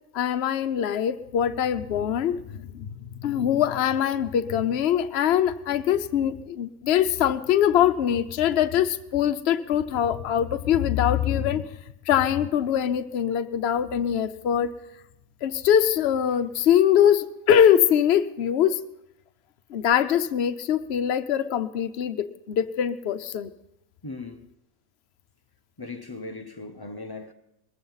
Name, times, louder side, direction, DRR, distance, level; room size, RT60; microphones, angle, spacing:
voice 1, 0.1-11.7 12.1-14.7 15.4-18.8 19.7-23.5, left 9 dB, 55° left, 0.8 m, -23 dB
voice 2, 24.0-24.5 25.8-27.3, left 3 dB, 40° left, 0.3 m, -38 dB
21.0 x 14.5 x 4.0 m
omnidirectional pair, 1.9 m